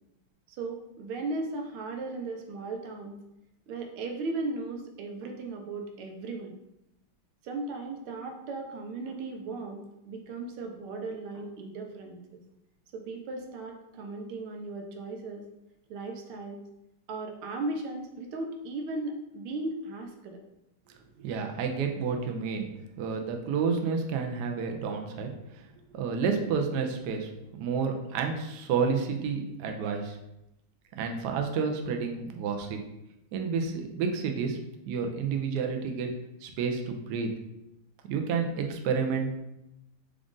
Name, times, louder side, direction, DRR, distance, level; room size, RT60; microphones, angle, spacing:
voice 1, 0.5-3.2 3.7-6.5 7.4-12.4 12.9-15.4 15.9-16.6 17.1-20.4, right 3 dB, 90° right, 3 dB, 1.6 m, -36 dB
voice 2, 21.2-22.7 23.0-25.3 25.9-27.3 27.6-30.2 31.0-32.8 33.3-34.6 34.9-36.1 36.4-37.3 38.1-39.3, right 5 dB, 70° right, 4 dB, 1.0 m, -30 dB
5.0 x 2.4 x 3.7 m, 0.89 s
omnidirectional pair, 2.3 m